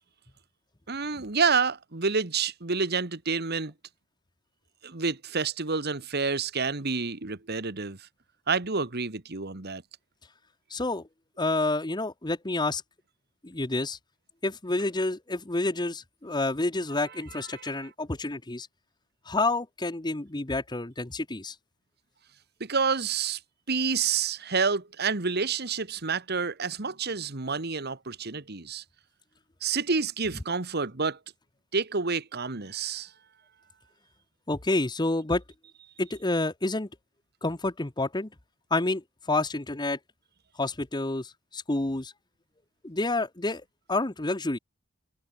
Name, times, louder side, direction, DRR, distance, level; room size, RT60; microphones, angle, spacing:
voice 1, 0.9-3.7 4.8-8.0 8.5-9.8 17.5-17.9 22.6-23.4 23.7-28.8 29.6-31.2 31.7-33.1, right 5 dB, 50° right, 1.6 m, -28 dB
voice 2, 10.7-11.1 11.4-12.8 13.4-14.0 14.4-18.7 19.3-21.5 34.5-35.4 36.0-36.9 37.4-38.3 38.7-40.0 40.6-42.1 42.8-43.6 43.9-44.6, left 2 dB, 20° left, 1.0 m, -29 dB
head